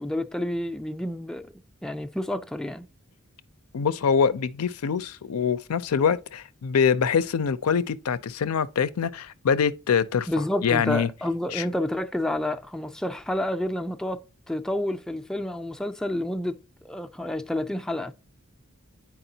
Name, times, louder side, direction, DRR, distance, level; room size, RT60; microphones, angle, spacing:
voice 1, 0.0-1.4 1.8-2.9 10.3-16.6 16.8-18.1, left 1 dB, 5° left, 0.4 m, -29 dB
voice 2, 3.7-10.3 10.6-11.1 11.5-11.6, left 6 dB, 85° left, 0.5 m, -24 dB
8.9 x 4.7 x 2.7 m
head